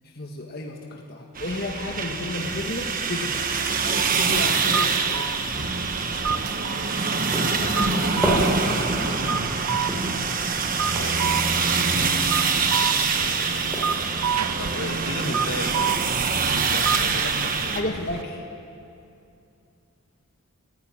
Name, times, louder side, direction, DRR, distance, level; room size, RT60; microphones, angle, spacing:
voice 1, 0.1-3.4 3.8-5.4 17.0-17.3 17.7-18.4, left 2 dB, 45° left, 1 dB, 1.6 m, -32 dB
sound 1, 1.4-17.8, right 5 dB, 40° right, 1.3 m, -25 dB
sound 2, 2.4-2.8 3.2-14.4, equal, 5° right, 3.9 m, -33 dB
sound 3, 4.3-18.2, right 7 dB, 85° right, 0.6 m, -31 dB
voice 2, 7.6-9.4 10.8-11.8 12.9-13.9 14.6-16.0 16.4-18.0, left 2 dB, 70° left, 4 dB, 1.9 m, -36 dB
22.5 x 15.5 x 8.9 m, 2.6 s
head